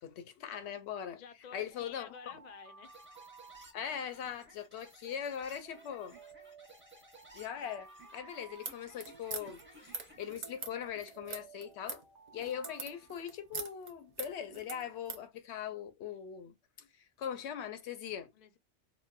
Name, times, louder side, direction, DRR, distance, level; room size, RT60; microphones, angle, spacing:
voice 1, 0.0-1.2 1.5-2.1 3.7-6.2 7.3-12.0 12.3-18.3, left 8 dB, 75° left, 0.8 m, -41 dB
voice 2, 1.1-2.9 18.3-18.6, left 7 dB, 55° left, 0.5 m, -51 dB
Alarm, 1.7-4.3 5.6-9.3 10.6-13.9, right 5 dB, 70° right, 1.1 m, -57 dB
sound 1, 2.8-10.3, right 1 dB, 10° right, 0.8 m, -58 dB
sound 2, 8.5-15.3, right 5 dB, 50° right, 0.6 m, -44 dB
4.1 x 2.0 x 2.3 m
omnidirectional pair, 1.2 m